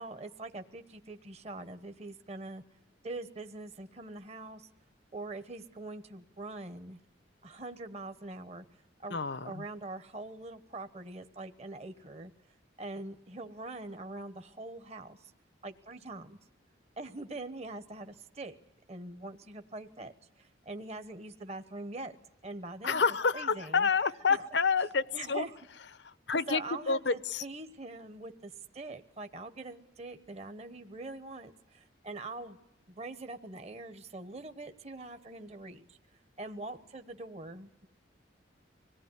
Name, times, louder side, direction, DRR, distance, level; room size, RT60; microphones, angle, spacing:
voice 1, 0.0-2.6 3.0-4.7 5.1-7.0 7.4-8.6 9.0-9.2 9.4-12.3 12.8-15.3 15.6-16.4 17.0-18.6 18.9-22.1 22.4-23.9 24.3-24.4 25.1-25.6 26.3-32.6 32.9-36.0 36.4-37.9, right 2 dB, 35° right, 8 dB, 1.1 m, -43 dB
voice 2, 9.1-9.6 22.8-25.4 26.3-26.6 26.9-27.4, left 5 dB, 65° left, 16 dB, 0.8 m, -28 dB
25.0 x 19.0 x 9.7 m, 0.89 s
head